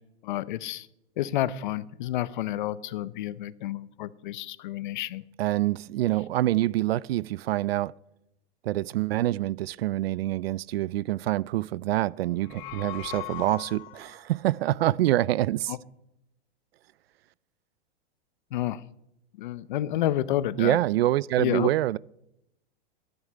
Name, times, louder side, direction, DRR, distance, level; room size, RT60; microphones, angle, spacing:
voice 1, 0.2-0.9 1.2-5.2 15.7-15.8 18.5-18.8 19.4-20.8 21.4-21.7, left 13 dB, 45° left, 0.7 m, -30 dB
voice 2, 5.4-7.9 8.6-15.7 20.6-22.0, right 15 dB, 65° right, 0.4 m, -26 dB
sound 1, 12.3-14.2, left 15 dB, 30° left, 1.0 m, -39 dB
11.0 x 11.0 x 9.8 m
supercardioid pair, 165°, 33 cm